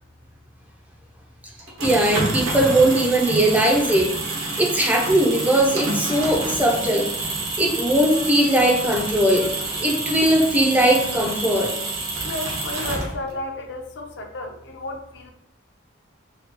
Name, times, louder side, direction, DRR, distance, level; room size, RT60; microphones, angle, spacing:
sound 1, 1.6-13.4, right 2 dB, 90° right, 0.9 m, -28 dB
voice 1, 1.8-4.1 4.6-7.1 7.6-9.5 9.8-11.7, right 1 dB, 5° right, 0 dB, 0.3 m, -19 dB
voice 2, 12.2-15.3, left 2 dB, 55° left, 3 dB, 0.5 m, -33 dB
4.0 x 2.2 x 2.9 m, 0.77 s
head